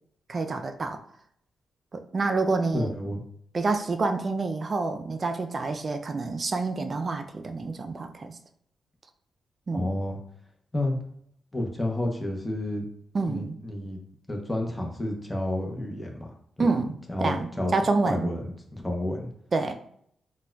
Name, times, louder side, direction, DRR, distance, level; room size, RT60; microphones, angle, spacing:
voice 1, 0.3-1.0 1.9-2.9 3.5-8.4 9.7-9.9 13.1-13.6 16.6-16.9 17.2-17.4 17.7-18.3 19.5-19.7, right 3 dB, 40° right, 6 dB, 0.3 m, -27 dB
voice 2, 2.7-3.2 9.7-10.2 10.7-11.0 11.5-12.8 13.2-14.0 14.3-16.3 16.6-16.7 17.1-17.7 18.1-19.3, left 1 dB, 15° left, 1 dB, 0.7 m, -30 dB
4.0 x 2.3 x 2.2 m, 0.68 s
cardioid pair, 80°, 0 cm